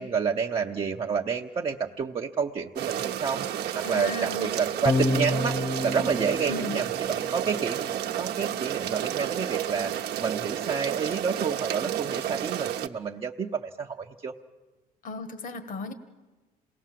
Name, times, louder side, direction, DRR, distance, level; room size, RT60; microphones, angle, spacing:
voice 1, 0.0-7.9 8.2-9.9 10.2-14.3, right 6 dB, 30° right, 0 dB, 0.8 m, -29 dB
sound 1, 2.8-12.9, right 10 dB, 75° right, 1.0 m, -31 dB
voice 2, 3.8-4.6 6.3-6.8 15.0-15.9, left 2 dB, 55° left, 11 dB, 1.7 m, -36 dB
sound 2, 4.9-7.5, left 2 dB, 30° left, 0.9 m, -29 dB
27.0 x 19.0 x 7.6 m, 1.2 s
cardioid pair, 110°, 17 cm